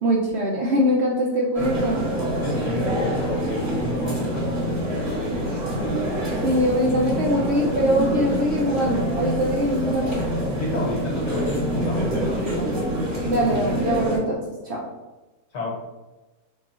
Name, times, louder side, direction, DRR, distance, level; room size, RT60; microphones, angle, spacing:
voice 1, 0.0-2.1 6.4-10.2 13.3-14.8, equal, 65° right, -3 dB, 0.7 m, -22 dB
sound 1, 1.5-14.2, equal, 45° right, 1.6 m, -26 dB
voice 2, 2.4-5.6 10.6-12.6 15.5-15.8, left 1 dB, 65° left, -2 dB, 1.4 m, -31 dB
3.7 x 2.0 x 4.0 m, 1.1 s
omnidirectional pair, 1.6 m